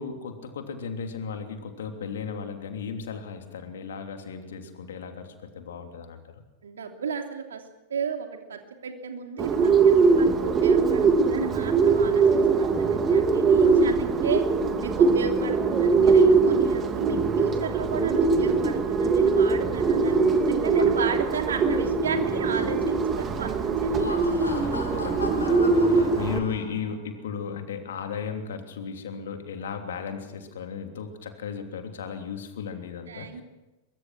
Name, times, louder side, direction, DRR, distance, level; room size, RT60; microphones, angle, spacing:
voice 1, 0.0-6.4 13.6-13.9 20.8-20.9 24.5-33.4, left 6 dB, 60° left, 5 dB, 3.1 m, -36 dB
voice 2, 6.6-7.6 7.9-14.4 14.8-24.6 33.1-33.4, right 6 dB, 65° right, 4 dB, 2.9 m, -33 dB
Bird, 9.4-26.4, right 4 dB, 25° right, 2.5 m, -22 dB
Laughter, 23.8-27.0, left 3 dB, 80° left, 3.2 m, -37 dB
23.5 x 23.0 x 6.2 m, 1.1 s
figure-of-eight pair, 90°, 0 cm